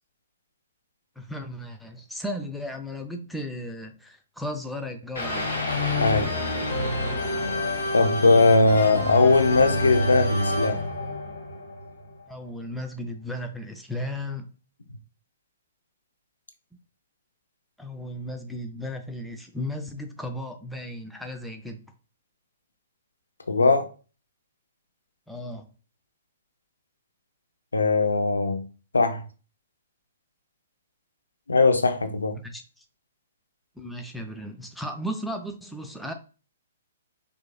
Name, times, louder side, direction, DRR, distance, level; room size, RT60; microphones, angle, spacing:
voice 1, 1.2-5.5 12.3-14.5 17.8-21.9 25.3-25.7 32.4-32.8 33.8-36.1, left 1 dB, ahead, 0.4 m, -35 dB
sound 1, 5.1-12.1, left 1 dB, 60° left, 1.6 m, -28 dB
voice 2, 7.9-10.9 23.5-23.9 27.7-28.6 28.9-29.2 31.5-32.4, left 3 dB, 80° left, 0.6 m, -20 dB
4.5 x 2.6 x 2.2 m
figure-of-eight pair, 120°, 0 cm